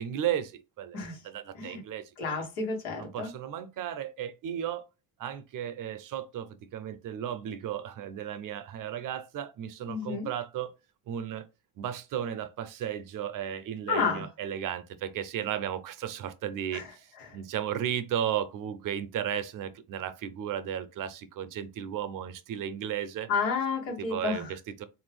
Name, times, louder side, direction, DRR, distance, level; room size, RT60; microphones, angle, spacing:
voice 1, 0.0-2.4 3.0-4.8 5.2-10.7 11.1-11.5 11.8-23.3 24.0-24.9, right 10 dB, 50° right, 0.6 m, -34 dB
voice 2, 2.2-3.3 9.9-10.3 13.9-14.2 16.7-16.9 17.2-17.3 23.3-24.5, left 5 dB, 85° left, 1.5 m, -31 dB
3.6 x 2.6 x 3.4 m
supercardioid pair, 85°, 40 cm